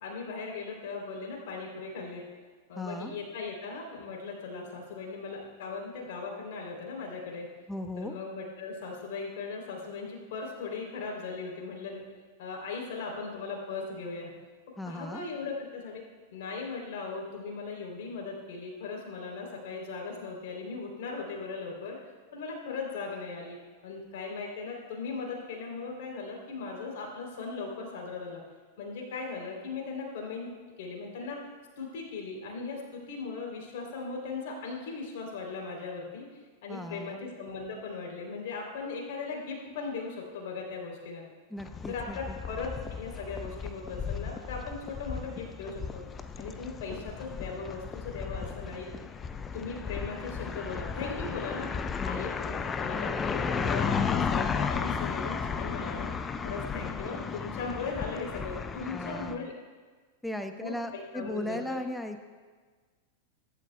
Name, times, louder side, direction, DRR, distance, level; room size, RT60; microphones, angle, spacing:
voice 1, 0.0-2.3 2.7-7.5 8.0-12.0 12.4-14.3 14.8-16.0 16.3-22.0 22.3-23.6 23.8-28.4 28.8-30.5 30.8-31.4 31.8-36.3 36.6-41.3 41.8-46.0 46.4-48.9 49.5-51.7 52.0-56.1 56.4-59.5 60.6-61.8, left 4 dB, 55° left, 0 dB, 3.3 m, -38 dB
voice 2, 2.7-3.1 7.7-8.2 14.8-15.3 36.7-37.2 41.5-42.4 52.0-52.3 58.9-59.5 60.2-62.2, left 1 dB, 5° left, 7 dB, 1.0 m, -37 dB
sound 1, 41.6-59.3, left 6 dB, 20° left, 0.6 m, -34 dB
22.5 x 12.0 x 2.3 m, 1.5 s
figure-of-eight pair, 95°, 0 cm